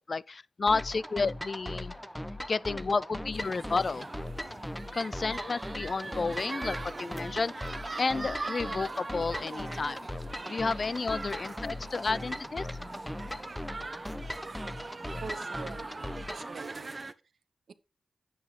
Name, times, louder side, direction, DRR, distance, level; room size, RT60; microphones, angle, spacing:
voice 1, 0.0-1.9 2.5-4.1 4.9-7.7 8.0-10.1 10.5-12.7, left 4 dB, 55° left, 0.4 m, -31 dB
sound 1, 0.7-16.5, left 1 dB, 5° left, 0.9 m, -39 dB
sound 2, 3.3-17.1, right 3 dB, 40° right, 0.7 m, -42 dB
voice 2, 15.2-17.0 17.7-17.8, right 5 dB, 75° right, 0.8 m, -44 dB
9.6 x 8.0 x 3.2 m
cardioid pair, 60°, 0 cm